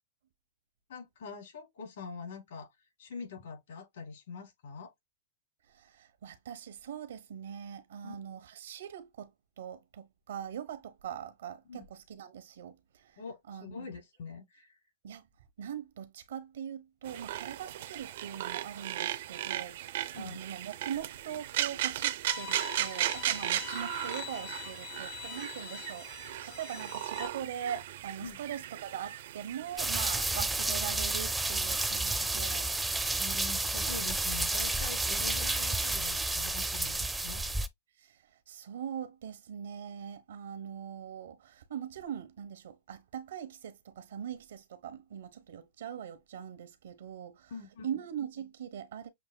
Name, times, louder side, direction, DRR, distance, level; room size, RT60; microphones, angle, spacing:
voice 1, 0.9-2.7 3.0-4.9 8.0-8.2 11.6-11.8 13.2-14.8 20.1-20.4 28.2-28.4 33.2-37.4 47.5-47.9, left 5 dB, 80° left, 3.6 m, -44 dB
voice 2, 5.7-9.3 9.6-13.2 13.5-13.9 15.0-15.2 15.6-32.7 38.0-38.2 38.5-47.5 47.8-49.1, right 9 dB, 85° right, 1.1 m, -42 dB
sound 1, 17.0-30.4, right 13 dB, 65° right, 0.6 m, -36 dB
Bowed string instrument, 22.3-27.3, left 13 dB, 45° left, 0.7 m, -44 dB
sound 2, 29.8-37.7, right 2 dB, 5° right, 0.4 m, -31 dB
7.3 x 2.6 x 2.3 m
supercardioid pair, 150°, 0 cm